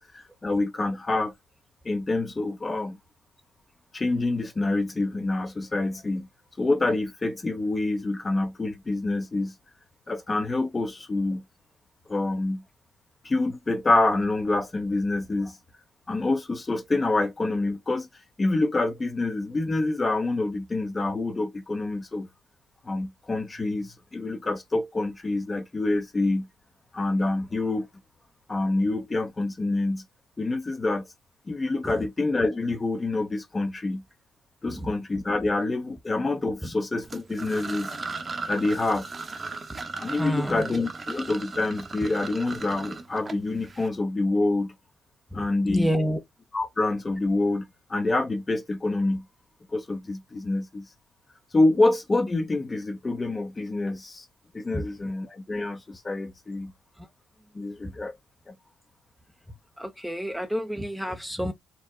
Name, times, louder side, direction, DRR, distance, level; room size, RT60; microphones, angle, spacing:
voice 1, 0.1-1.3 1.8-3.0 3.9-6.3 6.6-9.5 10.1-11.4 12.1-12.6 13.2-15.6 16.1-18.1 18.4-22.3 22.8-26.5 26.9-27.9 28.5-30.0 30.4-31.1 31.5-34.0 34.6-37.9 38.5-39.1 39.9-44.7 45.3-45.9 46.5-47.6 47.9-49.2 49.7-50.9 51.5-54.2 54.5-56.7 57.5-58.2 58.5-58.6, left 2 dB, 25° left, 0.9 m, -26 dB
sound 1, 37.0-43.9, right 3 dB, 30° right, 0.9 m, -37 dB
voice 2, 40.2-40.7 45.3-46.2 54.7-54.9 57.0-57.1 59.8-61.5, equal, 5° right, 0.6 m, -29 dB
4.5 x 2.2 x 3.8 m
cardioid pair, 90°, 0 cm